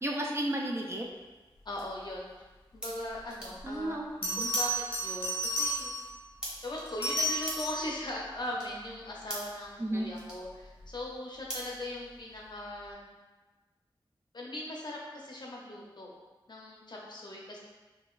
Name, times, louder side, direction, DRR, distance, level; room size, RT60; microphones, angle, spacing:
voice 1, 0.0-1.0 3.6-4.5 9.8-10.1, right 1 dB, 30° right, -1 dB, 0.4 m, -33 dB
sound 1, 1.0-12.5, right 1 dB, 10° right, 0.9 m, -47 dB
voice 2, 1.6-2.3 2.7-4.0 4.4-5.9 6.6-13.1 14.3-16.1 16.5-17.6, left 1 dB, 55° left, -3 dB, 0.7 m, -39 dB
Bell, 3.6-3.7 4.2-6.2 6.9-7.9 10.6-10.9, equal, 85° left, 0.7 m, -32 dB
3.7 x 2.4 x 2.4 m, 1.2 s
wide cardioid pair, 75°, 9 cm